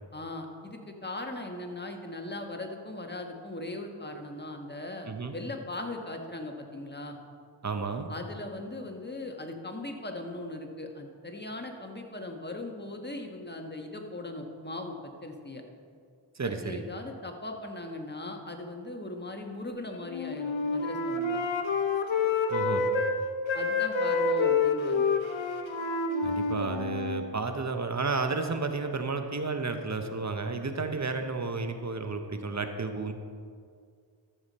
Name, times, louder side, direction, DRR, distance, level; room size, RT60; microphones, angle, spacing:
voice 1, 0.1-7.2 8.1-15.6 16.4-21.4 23.5-25.1 26.7-26.8 30.9-31.0, left 2 dB, 20° left, 3 dB, 1.4 m, -39 dB
voice 2, 7.6-8.1 16.4-16.8 22.5-22.9 26.2-33.1, right 4 dB, 35° right, 7 dB, 0.9 m, -32 dB
Wind instrument woodwind instrument, 20.1-23.2 23.5-27.2, left 4 dB, 70° left, 1.0 m, -28 dB
13.0 x 7.1 x 4.2 m, 2.2 s
cardioid pair, 50°, 48 cm